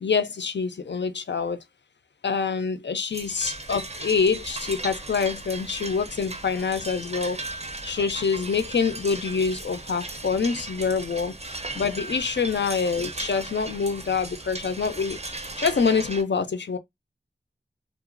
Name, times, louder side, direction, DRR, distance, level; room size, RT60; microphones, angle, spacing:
voice 1, 0.0-1.6 2.2-7.4 7.8-16.8, left 5 dB, 60° left, 0.4 m, -26 dB
sound 1, 3.1-16.2, right 2 dB, 30° right, 0.5 m, -37 dB
2.9 x 2.3 x 2.4 m
wide cardioid pair, 40°, 20 cm